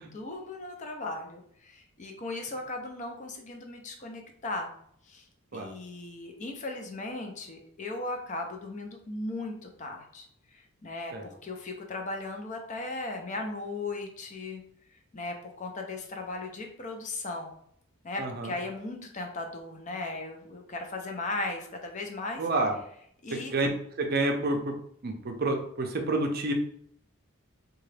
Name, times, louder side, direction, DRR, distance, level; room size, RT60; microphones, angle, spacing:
voice 1, 0.0-4.7 5.1-5.3 5.5-14.6 15.1-17.5 18.0-22.5 23.2-23.5, left 2 dB, 35° left, 3 dB, 0.5 m, -37 dB
voice 2, 18.2-18.5 22.4-22.7 23.3-23.7 24.0-24.7 25.0-26.5, right 2 dB, 45° right, 3 dB, 0.5 m, -29 dB
3.7 x 2.3 x 3.2 m, 0.67 s
head